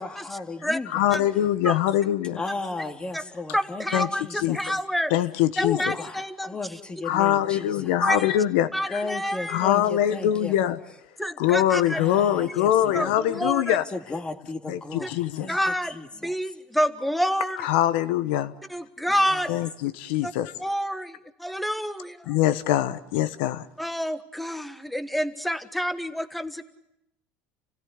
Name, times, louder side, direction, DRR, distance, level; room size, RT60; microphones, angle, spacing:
voice 1, 0.0-0.9 2.4-4.6 5.6-8.0 8.9-10.5 11.9-13.1 13.9-15.1 15.4-16.3 19.3-19.4, left 3 dB, 15° left, 6 dB, 2.2 m, -35 dB
voice 2, 0.9-2.4 3.9-4.1 4.4-4.6 5.1-5.9 7.0-9.0 9.5-10.8 11.4-13.8 14.7-15.5 17.6-18.5 19.5-20.5 22.3-23.6, left 12 dB, 85° left, 14 dB, 1.3 m, -23 dB
voice 3, 3.5-5.1 5.6-6.8 7.1-7.2 8.0-8.3 8.7-9.7 11.2-12.0 12.9-13.8 15.0-15.1 15.5-16.0 16.2-17.7 18.7-19.5 20.2-20.3 20.6-22.4 23.8-26.6, equal, ahead, 10 dB, 1.5 m, -28 dB
28.5 x 16.5 x 9.7 m, 0.85 s
supercardioid pair, 120°, 5 cm